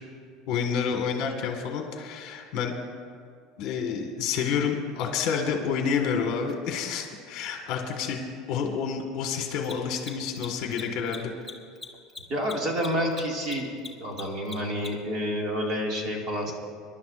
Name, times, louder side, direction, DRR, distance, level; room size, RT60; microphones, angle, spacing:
voice 1, 0.5-2.7 3.6-8.2 8.5-11.3, left 6 dB, 50° left, 3 dB, 1.7 m, -29 dB
Mechanisms, 6.5-6.6 9.5-15.2, left 4 dB, ahead, 1.2 m, -41 dB
voice 2, 12.3-13.7 14.0-16.5, equal, 35° right, -1 dB, 2.3 m, -29 dB
26.5 x 11.5 x 2.6 m, 2.2 s
cardioid pair, 165°, 0 cm